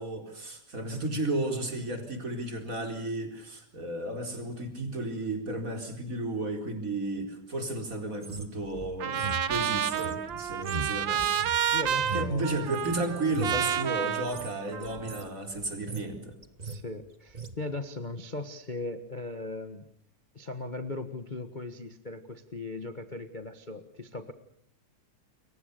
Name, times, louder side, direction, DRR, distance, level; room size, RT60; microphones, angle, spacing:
voice 1, 0.0-11.4 12.1-16.4, right 2 dB, 25° right, 5 dB, 4.5 m, -33 dB
sound 1, 8.2-12.9 13.3-13.7 14.2-14.5 14.8-15.3 15.6-16.2 16.4-16.8 17.3-17.5, right 3 dB, 40° right, 0.5 m, -38 dB
Trumpet, 9.0-15.2, right 9 dB, 55° right, 1.3 m, -30 dB
voice 2, 11.7-12.7 14.7-15.0 16.6-19.8 20.3-24.3, left 2 dB, 60° left, 9 dB, 0.4 m, -38 dB
29.0 x 23.0 x 6.8 m, 0.63 s
omnidirectional pair, 3.6 m